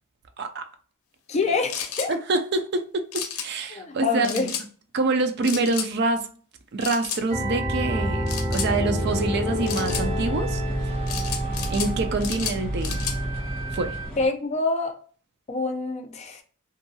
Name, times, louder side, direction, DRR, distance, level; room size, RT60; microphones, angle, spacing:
voice 1, 1.3-2.1 3.7-4.5 5.5-5.7 14.2-15.0 15.5-16.4, left 3 dB, 30° left, 0.4 m, -26 dB
sound 1, 1.7-2.1 3.1-3.5 4.2-4.7 5.4-5.9 6.8-7.2 8.3-8.7 9.7-10.1 11.1-11.9 12.2-13.2, left 8 dB, 90° left, 0.5 m, -32 dB
voice 2, 2.1-3.0 3.4-4.5 4.9-6.3 6.7-8.3 8.5-10.9 11.7-13.0 13.7-13.9, right 3 dB, 50° right, 0.4 m, -26 dB
sound 2, 7.3-14.1, right 1 dB, 30° right, 0.8 m, -28 dB
sound 3, 9.0-14.3, equal, 10° left, 1.0 m, -39 dB
2.7 x 2.3 x 2.6 m
head